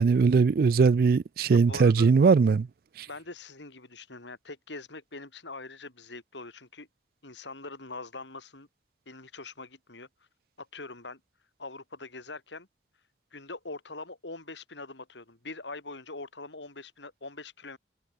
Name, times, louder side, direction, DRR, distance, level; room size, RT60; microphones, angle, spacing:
voice 1, 0.0-2.7, right 5 dB, 55° right, 0.3 m, -20 dB
voice 2, 1.5-2.2 3.1-6.9 7.2-8.7 9.1-10.1 10.6-11.2 11.6-12.7 13.3-17.8, left 3 dB, 80° left, 3.9 m, -43 dB
head